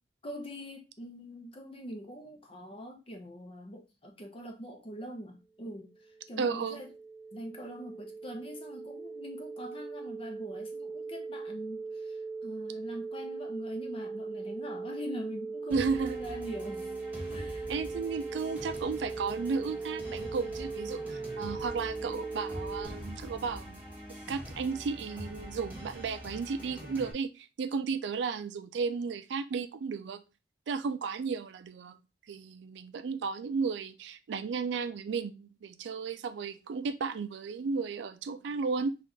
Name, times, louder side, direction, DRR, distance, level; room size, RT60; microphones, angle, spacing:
voice 1, 0.2-5.9 6.3-6.9 7.3-16.9 17.3-17.7, equal, 30° left, 0.7 m, -43 dB
sound 1, 5.8-22.9, right 4 dB, 10° left, 1.1 m, -40 dB
voice 2, 6.4-6.8 15.7-16.2 17.7-23.8 24.3-30.2 30.7-32.0 32.3-39.0, right 5 dB, 75° right, 0.4 m, -34 dB
sound 2, 15.7-27.1, equal, 10° right, 1.4 m, -44 dB
4.0 x 2.4 x 3.1 m
head